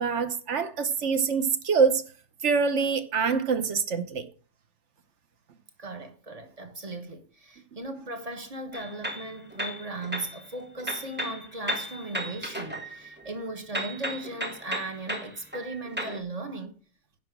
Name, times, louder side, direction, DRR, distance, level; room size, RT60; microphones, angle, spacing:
voice 1, 0.0-2.0 2.4-4.3, right 5 dB, 50° right, 0.9 m, -25 dB
voice 2, 5.8-16.8, right 2 dB, 20° right, 1.1 m, -37 dB
sound 1, 8.7-10.4 10.8-13.4 13.7-16.2, equal, 5° right, 1.2 m, -35 dB
10.5 x 5.8 x 6.0 m
omnidirectional pair, 2.2 m